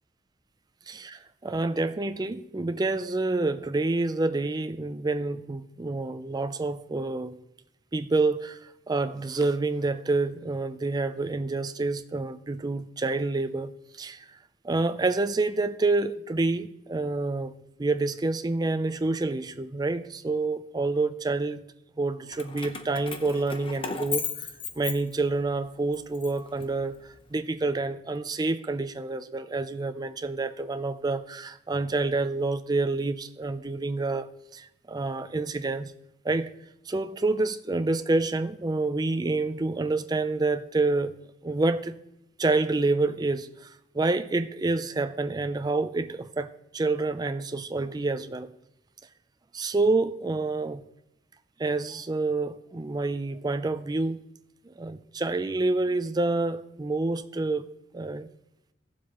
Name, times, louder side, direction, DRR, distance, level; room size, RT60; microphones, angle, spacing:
voice 1, 0.9-7.4 7.9-14.3 14.6-17.5 17.8-21.6 22.0-24.5 24.8-35.9 36.2-36.5 36.9-41.1 41.4-41.9 42.4-43.7 43.9-48.5 49.5-50.9 51.6-54.2 54.6-57.6 57.9-58.3, right 3 dB, 20° right, 0.4 m, -28 dB
Keys jangling, 22.3-25.5 25.9-27.2, left 6 dB, 30° left, 0.7 m, -36 dB
17.5 x 7.4 x 3.0 m
head